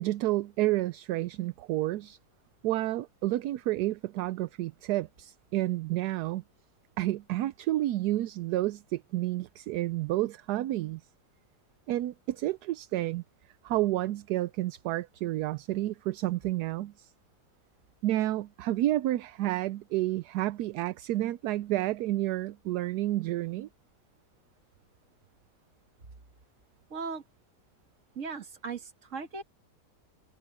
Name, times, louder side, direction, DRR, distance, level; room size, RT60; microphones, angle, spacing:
voice 1, 0.0-2.2 2.6-6.4 7.0-11.0 11.9-13.2 13.6-17.1 18.0-23.7, right 15 dB, 75° right, 1.1 m, -30 dB
voice 2, 26.9-27.2 28.2-29.4, right 5 dB, 50° right, 2.1 m, -37 dB
omnidirectional pair, 1.8 m